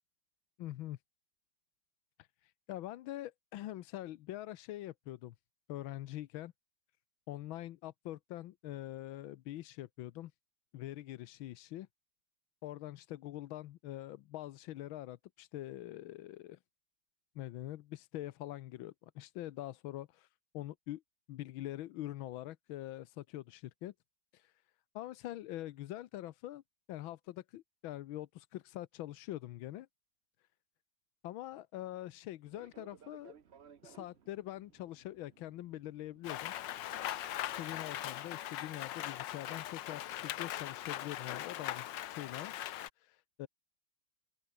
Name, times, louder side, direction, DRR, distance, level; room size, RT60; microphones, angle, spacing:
voice 1, 0.6-1.0 2.2-5.3 5.7-6.5 7.3-10.3 10.7-11.9 12.6-16.6 17.4-20.3 20.5-21.0 21.3-23.9 24.3-24.6 24.9-26.6 26.9-29.9 31.2-33.4 33.8-36.5 37.4-41.9 42.2-43.5, left 14 dB, 90° left, 1.6 m, -44 dB
Fixed-wing aircraft airplane, 32.5-38.9, right 7 dB, 45° right, 1.0 m, -61 dB
Rain, 36.2-42.9, left 13 dB, 70° left, 1.4 m, -40 dB
open air
omnidirectional pair, 2.2 m